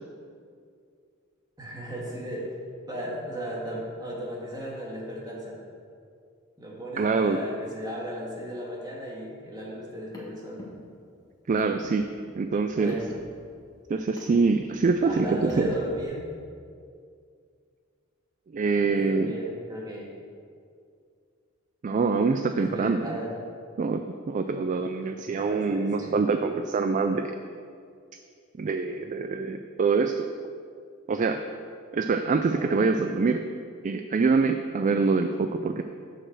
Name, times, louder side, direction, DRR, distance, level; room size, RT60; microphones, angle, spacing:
voice 1, 1.6-2.6 2.9-5.7 6.6-10.6 12.8-13.1 15.0-16.3 18.7-20.2 22.5-23.5 25.3-26.1 32.5-32.7, equal, 20° right, -3 dB, 1.8 m, -35 dB
voice 2, 7.0-7.4 11.5-12.1 12.4-13.0 13.9-15.7 18.5-19.3 21.8-23.1 23.8-27.4 28.6-30.3 31.1-31.4 31.9-33.4 33.8-35.8, right 4 dB, 35° right, 7 dB, 0.3 m, -25 dB
Car, 9.8-16.0, equal, 20° left, 1.7 m, -46 dB
7.4 x 6.6 x 6.6 m, 2.3 s
head